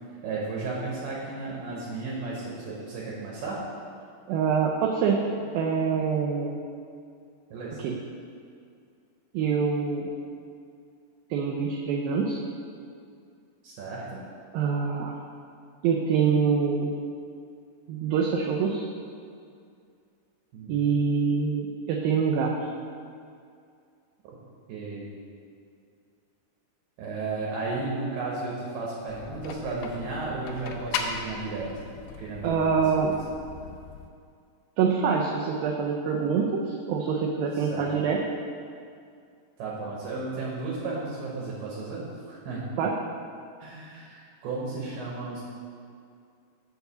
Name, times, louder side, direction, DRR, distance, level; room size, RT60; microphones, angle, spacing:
voice 1, 0.2-3.6 7.5-7.8 13.6-14.2 20.5-20.9 24.7-25.1 27.0-31.7 32.2-32.8 33.6-33.7 37.5-38.0 39.6-42.6 43.6-45.4, right 3 dB, 75° right, -4 dB, 2.8 m, -34 dB
voice 2, 4.3-5.2 5.5-6.6 7.8-8.0 9.3-10.1 11.3-12.4 14.5-15.2 15.8-16.9 17.9-18.9 20.7-22.5 32.4-33.1 34.8-38.2 42.8-43.0, right 6 dB, 90° right, 0 dB, 2.0 m, -25 dB
sound 1, 29.1-34.1, left 6 dB, 85° left, 2.6 m, -38 dB
6.4 x 4.7 x 6.8 m, 2.3 s
omnidirectional pair, 4.8 m